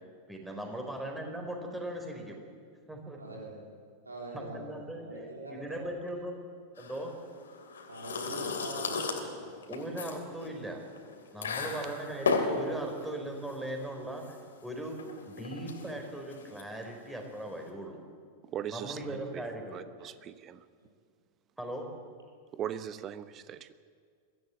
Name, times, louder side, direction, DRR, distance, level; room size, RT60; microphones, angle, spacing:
voice 1, 0.3-2.4 2.9-3.4 4.3-5.0 5.5-6.4 6.8-7.1 9.7-10.8 11.3-14.4 14.6-15.0 15.3-18.0 18.7-19.8 21.6-21.9, right 1 dB, 5° right, 2 dB, 4.3 m, -39 dB
voice 2, 3.2-3.6 4.1-5.8 7.9-9.5 11.4-11.6, right 1 dB, 80° right, -1 dB, 3.4 m, -43 dB
sound 1, 6.8-17.7, left 4 dB, 65° left, 2.9 m, -36 dB
voice 3, 18.4-20.7 22.5-23.7, right 10 dB, 30° right, 13 dB, 1.0 m, -40 dB
23.0 x 15.5 x 8.3 m, 2.1 s
figure-of-eight pair, 90°, 0 cm